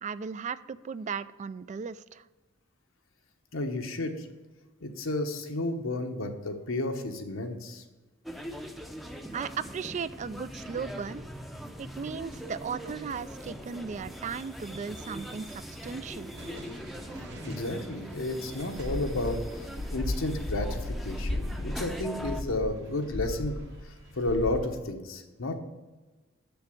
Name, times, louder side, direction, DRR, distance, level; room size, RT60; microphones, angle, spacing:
voice 1, 0.0-2.3 9.3-11.2 11.8-16.3, right 6 dB, 35° right, 16 dB, 0.3 m, -36 dB
voice 2, 3.5-4.1 4.8-7.8 17.4-23.6 24.2-25.6, left 2 dB, 85° left, 5 dB, 1.1 m, -32 dB
sound 1, 8.2-22.4, equal, ahead, 0.6 m, -42 dB
sound 2, 16.4-24.8, right 1 dB, 60° right, 1.5 m, -51 dB
sound 3, 18.8-23.9 24.2-24.6, left 1 dB, 55° left, 0.9 m, -35 dB
6.9 x 6.9 x 7.7 m, 1.2 s
head